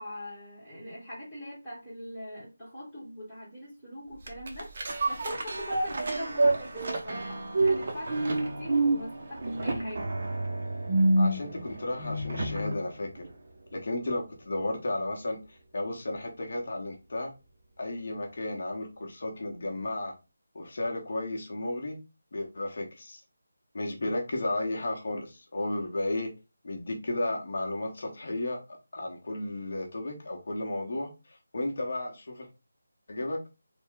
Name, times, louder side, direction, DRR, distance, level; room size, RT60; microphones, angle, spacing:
voice 1, 0.0-4.7 5.1-10.1, equal, ahead, -16 dB, 1.1 m, -41 dB
sound 1, 4.2-12.8 13.2-13.3, right 2 dB, 40° right, 0.6 m, -28 dB
voice 2, 11.2-13.3 13.7-17.3 17.8-20.1 20.5-22.0 22.3-23.2 23.7-26.3 26.6-32.5 33.1-33.4, left 2 dB, 50° left, 1 dB, 0.8 m, -33 dB
3.2 x 2.1 x 3.7 m, 0.28 s
figure-of-eight pair, 175°, 0 cm